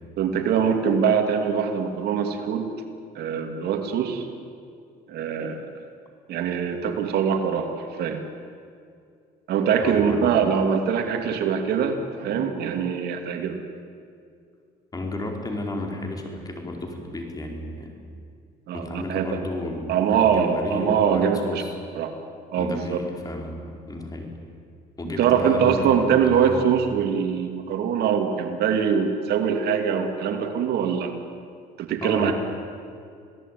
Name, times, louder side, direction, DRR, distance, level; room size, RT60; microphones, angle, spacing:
voice 1, 0.2-2.7 3.1-4.3 5.1-5.6 6.3-8.2 9.5-13.6 18.7-19.4 19.9-21.6 22.0-22.1 22.5-23.0 25.2-31.1 31.8-32.3, right 7 dB, 70° right, 5 dB, 2.7 m, -23 dB
voice 2, 9.8-10.4 14.9-17.9 18.7-21.8 22.6-23.6 23.9-24.3 25.0-26.7 32.0-32.4, left 2 dB, 20° left, 2 dB, 4.8 m, -33 dB
27.0 x 17.5 x 9.3 m, 2.3 s
cardioid pair, 110°, 17 cm